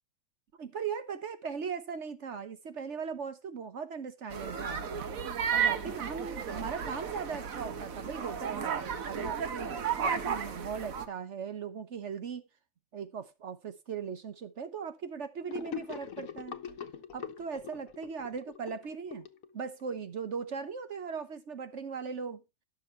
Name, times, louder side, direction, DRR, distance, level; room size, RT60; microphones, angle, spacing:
voice 1, 0.6-4.8 5.5-8.7 9.0-12.4 12.9-16.6 17.1-19.3 19.5-22.4, right 6 dB, 60° right, 1.3 m, -39 dB
sound 1, 4.3-11.1, right 7 dB, 85° right, 1.5 m, -33 dB
Gurgling / Sink (filling or washing), 15.5-20.0, left 8 dB, 90° left, 1.4 m, -43 dB
12.0 x 6.6 x 4.4 m
omnidirectional pair, 1.4 m